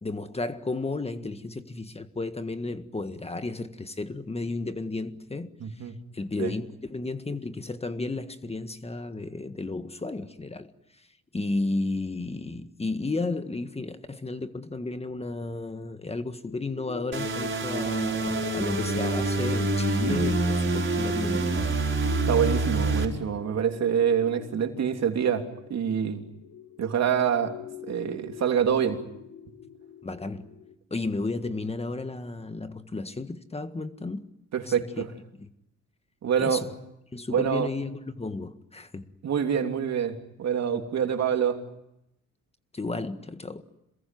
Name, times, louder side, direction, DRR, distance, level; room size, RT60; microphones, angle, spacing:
voice 1, 0.0-5.5 6.1-10.7 11.3-21.5 30.0-30.5 30.9-34.2 34.7-34.8 35.4-35.5 36.4-36.6 37.1-39.1 42.7-43.6, left 2 dB, 20° left, 1.6 m, -33 dB
voice 2, 5.6-5.9 6.4-6.5 22.3-26.2 26.8-27.6 27.9-29.0 34.5-35.1 36.2-36.6 37.3-37.7 39.2-41.6, right 8 dB, 60° right, 3.2 m, -26 dB
sound 1, 16.4-30.7, left 9 dB, 75° left, 2.0 m, -40 dB
sound 2, 17.1-23.0, right 3 dB, 40° right, 5.0 m, -26 dB
27.5 x 21.5 x 9.3 m
cardioid pair, 90°, 30 cm